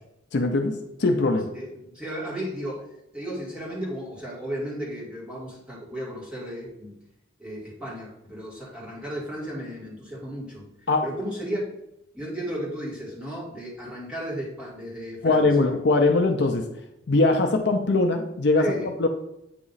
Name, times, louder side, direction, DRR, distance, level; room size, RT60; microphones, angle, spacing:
voice 1, 0.3-1.5 10.9-11.1 15.2-16.7 17.1-18.7 19.0-19.1, left 2 dB, 55° left, 5 dB, 0.5 m, -21 dB
voice 2, 1.5-2.8 3.1-6.9 7.4-10.6 11.0-11.7 12.1-15.7 18.6-18.9, equal, 5° right, -6 dB, 1.8 m, -34 dB
8.4 x 3.0 x 3.9 m, 0.84 s
head